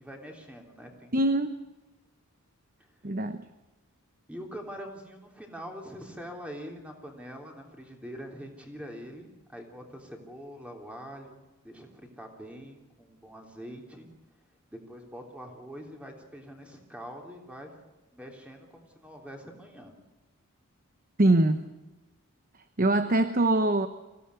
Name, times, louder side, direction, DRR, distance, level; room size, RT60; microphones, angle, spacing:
voice 1, 0.0-1.1 4.3-14.1 14.7-17.8 18.1-19.9, equal, 5° right, 1 dB, 3.4 m, -44 dB
voice 2, 1.1-1.6 3.0-3.5 21.2-21.7 22.8-23.9, right 2 dB, 40° right, 10 dB, 0.9 m, -23 dB
25.0 x 16.5 x 9.8 m, 1.1 s
head